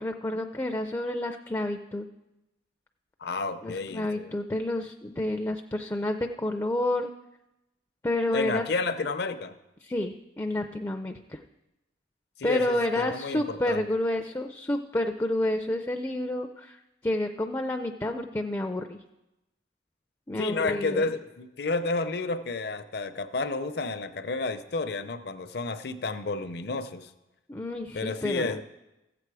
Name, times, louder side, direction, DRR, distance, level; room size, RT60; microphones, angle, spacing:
voice 1, 0.0-2.1 3.6-7.1 8.0-8.6 9.8-11.4 12.4-16.8 17.0-19.0 20.3-21.0 27.5-28.6, left 1 dB, 15° left, 6 dB, 0.4 m, -29 dB
voice 2, 3.2-4.3 8.3-9.5 12.4-13.8 20.4-27.1 27.9-28.6, left 3 dB, 55° left, 10 dB, 0.6 m, -31 dB
14.5 x 7.8 x 4.8 m, 0.96 s
head